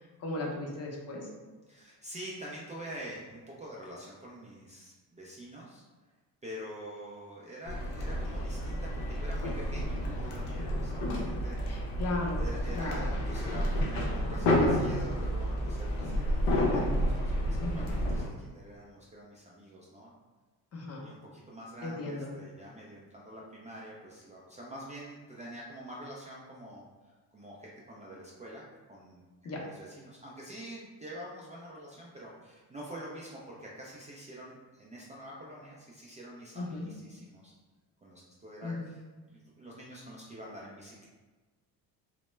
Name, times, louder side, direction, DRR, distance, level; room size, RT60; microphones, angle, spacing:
voice 1, 0.2-1.3 11.7-12.5 12.7-13.1 17.6-17.9 20.7-21.0 21.8-22.3 29.4-29.6 36.6-36.9 38.6-38.9, left 2 dB, 40° left, -1 dB, 0.6 m, -36 dB
voice 2, 1.7-5.8 6.4-11.8 12.4-20.1 21.0-28.6 28.9-29.2 29.5-37.5 38.0-39.0 39.3-41.1, right 1 dB, 20° right, -5 dB, 0.3 m, -46 dB
sound 1, 7.7-18.3, equal, 85° left, 0.6 m, -30 dB
2.1 x 2.1 x 3.1 m, 1.3 s
supercardioid pair, 85°, 40 cm